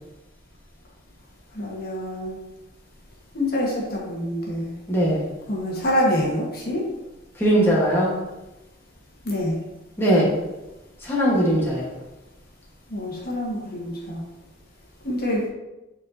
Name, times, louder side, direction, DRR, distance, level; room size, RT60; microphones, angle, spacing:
voice 1, 1.5-2.4 3.3-4.7 5.5-6.9 9.2-9.6 12.9-14.2 15.0-15.4, left 1 dB, 55° left, -3 dB, 1.5 m, -26 dB
voice 2, 4.9-5.3 7.4-8.1 10.0-10.4 11.0-12.0, equal, 15° left, -6 dB, 1.5 m, -20 dB
8.3 x 4.3 x 2.8 m, 1.0 s
head